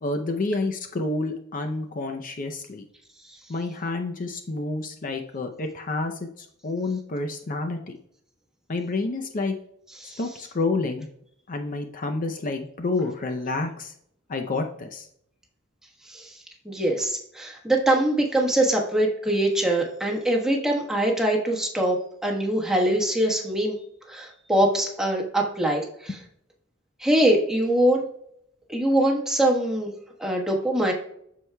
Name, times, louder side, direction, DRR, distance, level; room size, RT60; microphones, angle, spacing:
voice 1, 0.0-2.9 3.5-8.0 8.7-9.5 10.0-11.1 11.5-13.9 14.3-15.1, left 3 dB, 45° left, 4 dB, 0.6 m, -29 dB
voice 2, 16.6-22.0 22.2-23.7 24.1-26.2 27.0-28.0 28.7-29.9 30.2-30.9, right 1 dB, 5° right, -1 dB, 1.3 m, -23 dB
13.5 x 4.7 x 2.2 m, 0.70 s
head